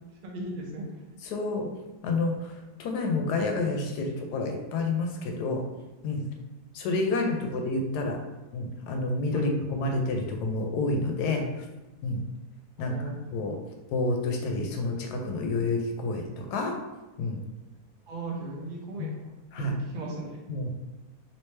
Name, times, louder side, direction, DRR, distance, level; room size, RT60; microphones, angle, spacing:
voice 1, 0.2-0.9 9.3-9.5 12.8-13.3 18.1-19.1 19.6-19.7 19.9-20.4, right 2 dB, 50° right, -1 dB, 0.6 m, -36 dB
voice 2, 1.2-1.7 2.0-5.6 6.0-6.2 6.7-8.2 8.5-11.7 12.0-12.2 12.8-13.6 13.9-16.8 17.2-17.4 19.0-19.2 19.5-19.8 20.5-20.7, left 2 dB, 85° left, 3 dB, 1.1 m, -29 dB
3.1 x 3.0 x 3.2 m, 1.1 s
omnidirectional pair, 1.7 m